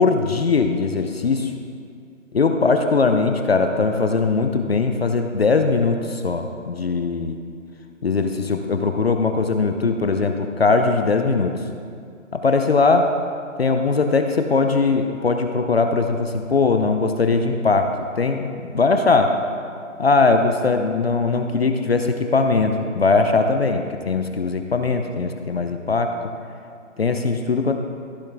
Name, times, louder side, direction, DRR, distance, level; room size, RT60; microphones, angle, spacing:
voice 1, 0.0-1.5 2.3-7.4 8.0-11.5 12.3-13.1 13.6-19.4 20.0-26.2 27.0-27.7, left 4 dB, 50° left, 6 dB, 0.6 m, -20 dB
14.5 x 5.7 x 3.4 m, 2.3 s
hypercardioid pair, 175°, 39 cm